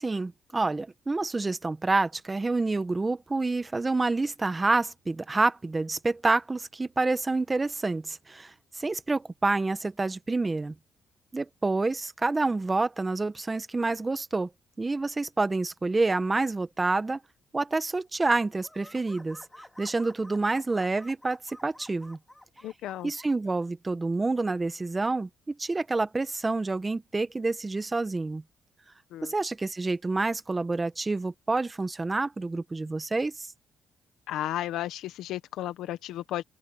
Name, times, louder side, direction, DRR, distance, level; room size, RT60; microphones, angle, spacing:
voice 1, 0.0-10.7 11.3-14.5 14.8-17.2 17.5-19.4 19.8-22.2 23.0-28.4 29.2-33.5, right 3 dB, 20° right, 1.3 m, -28 dB
sound 1, 18.6-23.3, left 1 dB, 5° left, 5.0 m, -51 dB
voice 2, 22.6-23.1 29.1-29.3 34.3-36.4, left 13 dB, 85° left, 1.4 m, -33 dB
open air
cardioid pair, 90°, 0 cm